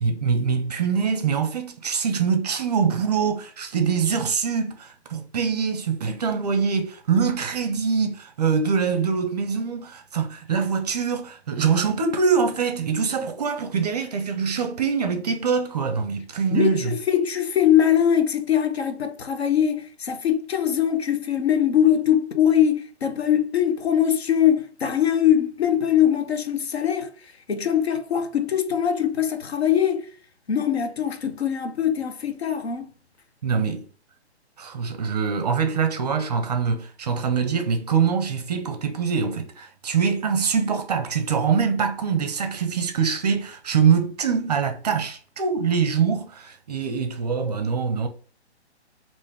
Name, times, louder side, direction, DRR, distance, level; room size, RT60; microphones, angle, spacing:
voice 1, 0.0-17.0 33.4-33.8 34.6-48.1, right 6 dB, 35° right, 0.5 m, -24 dB
voice 2, 16.5-27.1 27.5-30.1 30.5-32.9, left 9 dB, 65° left, 0.7 m, -22 dB
3.4 x 2.5 x 3.5 m
figure-of-eight pair, 130°, 34 cm